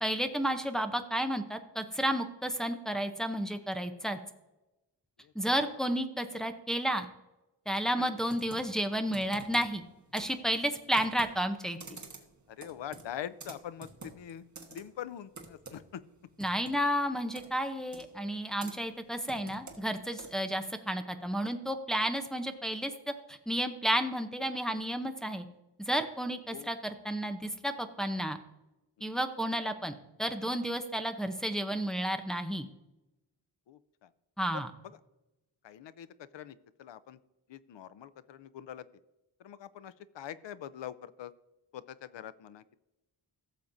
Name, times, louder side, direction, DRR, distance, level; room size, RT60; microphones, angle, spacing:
voice 1, 0.0-4.2 5.3-7.1 7.7-11.8 16.4-25.4 25.8-28.4 29.0-29.9 30.2-32.7 34.4-34.7, equal, ahead, 5 dB, 0.6 m, -32 dB
Computer keyboard, 8.3-20.6, right 4 dB, 40° right, 1.3 m, -51 dB
voice 2, 12.5-16.0 20.4-20.5 26.5-26.7 29.0-29.2 33.7-34.1 34.5-34.6 35.6-37.2 37.5-38.9 39.4-41.3 41.7-42.8, left 10 dB, 85° left, 15 dB, 0.6 m, -44 dB
16.0 x 7.1 x 2.6 m, 0.98 s
wide cardioid pair, 150°, 43 cm